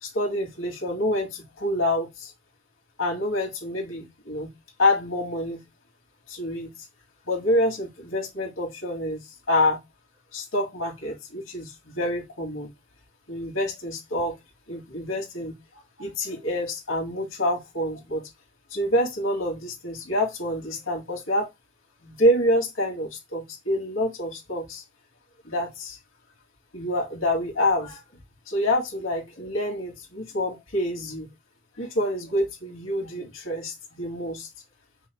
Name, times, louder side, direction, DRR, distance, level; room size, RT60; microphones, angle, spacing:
voice 1, 0.0-2.3 3.0-4.5 4.8-5.6 6.3-6.7 7.3-9.2 9.5-9.8 10.3-12.7 13.3-14.4 14.7-15.5 16.0-18.3 18.7-21.5 22.0-24.8 25.4-26.0 26.7-28.0 28.5-31.3 31.8-34.5, left 1 dB, 90° left, 2.0 m, -27 dB
5.5 x 2.1 x 4.5 m
head